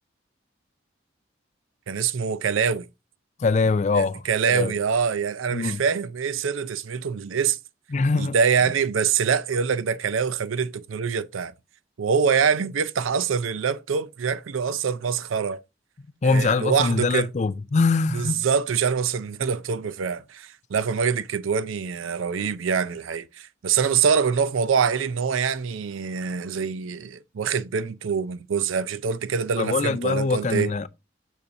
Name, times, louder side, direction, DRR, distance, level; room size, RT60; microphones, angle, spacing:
voice 1, 1.9-2.9 3.9-7.6 8.2-11.5 12.0-15.6 16.2-17.3 18.1-30.7, right 6 dB, 85° right, 0.5 m, -25 dB
voice 2, 3.4-4.7 5.5-5.8 7.9-8.4 16.2-18.4 29.6-30.9, left 4 dB, 35° left, 0.4 m, -23 dB
6.8 x 6.6 x 2.6 m
head